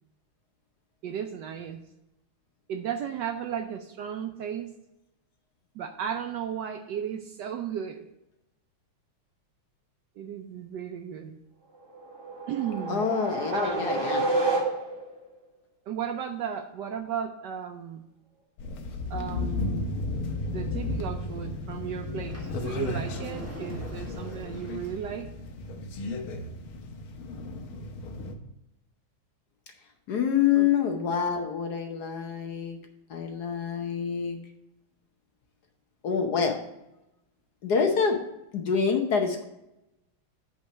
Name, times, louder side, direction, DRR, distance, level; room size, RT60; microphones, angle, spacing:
voice 1, 1.0-1.8 2.7-4.7 5.7-8.1 10.2-11.4 12.5-13.1 13.5-13.9 15.9-18.1 19.1-19.9 20.5-25.3 30.5-30.7, right 8 dB, 75° right, 6 dB, 1.0 m, -35 dB
sound 1, 11.9-15.2, right 2 dB, 30° right, 1.7 m, -29 dB
voice 2, 12.9-14.3 30.1-32.8 33.1-34.4 36.0-36.6 37.6-38.2 38.5-39.4, left 6 dB, 60° left, 4 dB, 1.2 m, -26 dB
sound 2, 18.6-28.3, left 2 dB, 85° left, 1.7 m, -34 dB
Sliding door, 22.1-25.1, right 1 dB, 10° right, 0.9 m, -43 dB
8.6 x 4.5 x 6.1 m, 0.89 s
omnidirectional pair, 2.3 m